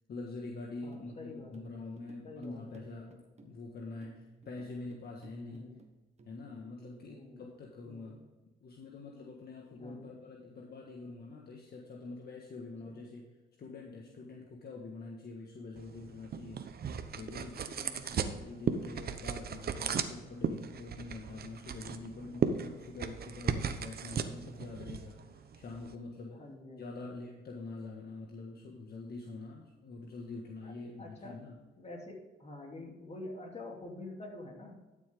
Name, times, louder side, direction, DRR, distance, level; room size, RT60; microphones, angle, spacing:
voice 1, 0.1-5.7 6.3-8.2 8.6-13.2 13.6-16.6 17.1-17.7 18.2-26.4 26.8-31.6, left 3 dB, 55° left, -1 dB, 1.7 m, -45 dB
voice 2, 0.8-1.6 2.2-2.7 5.5-5.8 7.0-7.4 7.8-8.2 9.7-10.1 12.8-13.1 17.7-18.4 22.2-22.5 26.3-27.0 30.6-31.4 31.8-34.8, left 2 dB, 35° left, 0 dB, 3.1 m, -48 dB
sound 1, 0.9-6.4, right 3 dB, 35° right, 1.4 m, -57 dB
sound 2, 15.8-25.9, right 7 dB, 50° right, 0.9 m, -37 dB
12.0 x 7.4 x 3.7 m, 1.2 s
cardioid pair, 90°, 20 cm